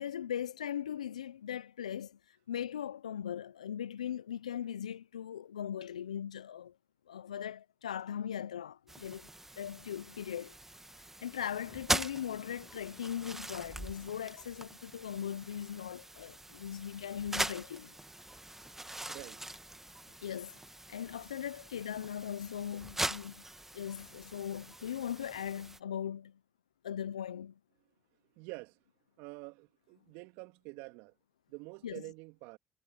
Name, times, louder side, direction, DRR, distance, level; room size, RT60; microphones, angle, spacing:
voice 1, 0.0-2.2 2.5-6.7 7.1-9.3 9.6-10.6 11.2-18.0 20.2-20.6 20.9-23.4 23.7-26.4 26.8-27.6 31.8-32.1, left 9 dB, 85° left, 0.9 m, -39 dB
sound 1, 8.9-25.8, right 1 dB, 10° right, 1.8 m, -42 dB
voice 2, 19.1-19.5 28.4-28.8 29.2-31.1 31.5-32.6, right 26 dB, 70° right, 3.2 m, -47 dB
hypercardioid pair, 50°, 4 cm